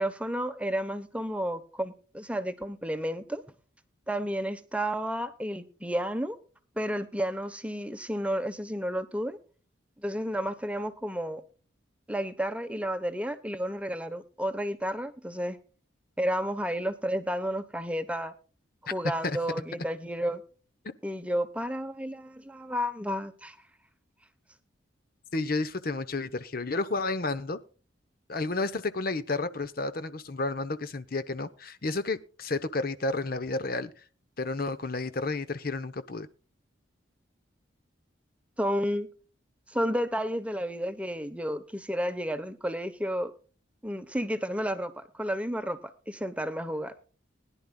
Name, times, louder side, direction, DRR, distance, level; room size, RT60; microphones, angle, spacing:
voice 1, 0.0-3.4 4.1-6.4 6.8-9.4 10.0-11.4 12.1-15.6 16.2-18.3 18.9-20.4 21.0-23.6 38.6-39.1 39.7-43.3 43.8-45.8 46.1-46.9, equal, 5° right, 0.9 m, -31 dB
voice 2, 25.3-27.6 28.3-33.9 34.4-36.3, left 3 dB, 50° left, 0.9 m, -31 dB
21.0 x 11.0 x 2.3 m
head